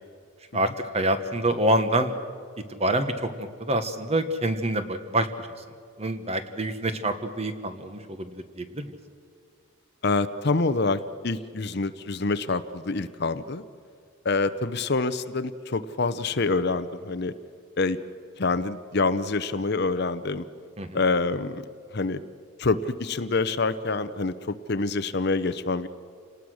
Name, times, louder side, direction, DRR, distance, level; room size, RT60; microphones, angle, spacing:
voice 1, 0.5-2.2 2.8-5.5 6.0-9.0 20.8-21.0, right 1 dB, 30° right, 9 dB, 1.3 m, -26 dB
voice 2, 10.0-13.6 14.2-17.3 17.8-18.0 18.4-20.4 20.9-21.6 21.9-22.2 22.6-25.9, left 3 dB, 50° left, 12 dB, 0.7 m, -26 dB
28.0 x 19.0 x 6.4 m, 2.2 s
head